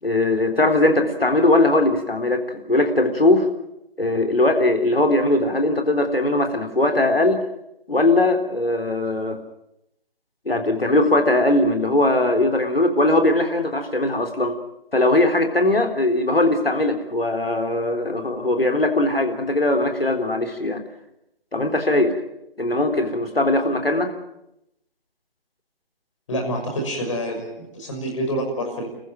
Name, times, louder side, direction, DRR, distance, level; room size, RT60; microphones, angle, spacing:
voice 1, 0.0-3.5 4.0-7.4 7.9-9.4 10.5-14.5 14.9-20.8 21.5-22.1 22.6-24.1, left 2 dB, 75° left, 4 dB, 3.7 m, -20 dB
voice 2, 26.3-29.0, equal, 30° left, 3 dB, 6.1 m, -27 dB
29.0 x 14.5 x 7.5 m, 0.84 s
figure-of-eight pair, 150°, 29 cm